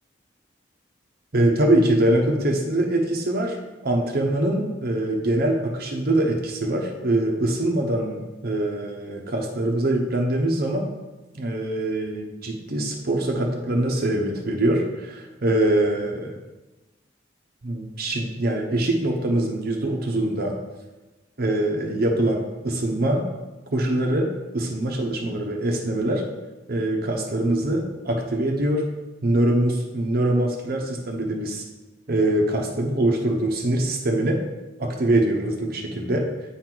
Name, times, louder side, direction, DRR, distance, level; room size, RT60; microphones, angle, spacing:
voice 1, 1.3-3.6 3.8-10.9 11.3-16.4 17.6-20.6 21.4-23.3 23.7-24.3 24.5-26.3 26.7-28.9 29.2-31.6 32.1-34.4 34.8-36.3, right 1 dB, 55° right, 1 dB, 0.8 m, -23 dB
8.7 x 4.5 x 3.9 m, 1.1 s
head